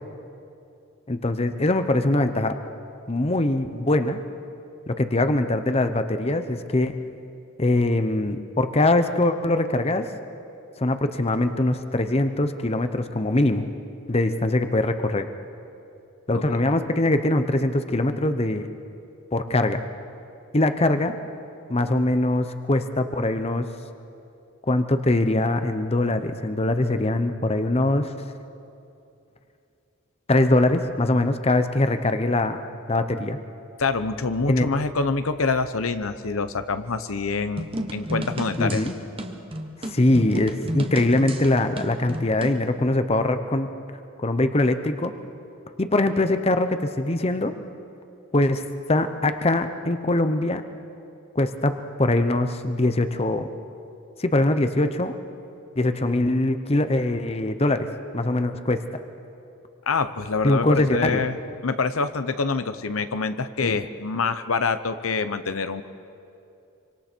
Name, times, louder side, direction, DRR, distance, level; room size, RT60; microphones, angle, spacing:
voice 1, 1.1-2.6 3.1-4.2 4.9-6.9 7.6-10.1 10.8-13.7 14.1-15.3 16.3-18.7 19.3-19.8 20.5-21.1 21.7-23.7 24.7-28.1 30.3-32.6 32.9-33.4 34.5-34.7 38.6-38.9 39.9-43.7 44.2-45.1 45.8-47.5 48.3-50.6 51.3-53.5 54.2-55.2 55.8-57.9 58.1-59.0 60.4-61.3 63.6-63.8, left 2 dB, 30° left, 9 dB, 0.8 m, -22 dB
voice 2, 33.8-37.7 37.9-38.8 59.9-61.4 61.6-65.8, left 4 dB, 90° left, 10 dB, 0.9 m, -26 dB
sound 1, 37.6-42.6, right 1 dB, 25° right, 1.3 m, -32 dB
26.0 x 25.0 x 4.5 m, 2.6 s
head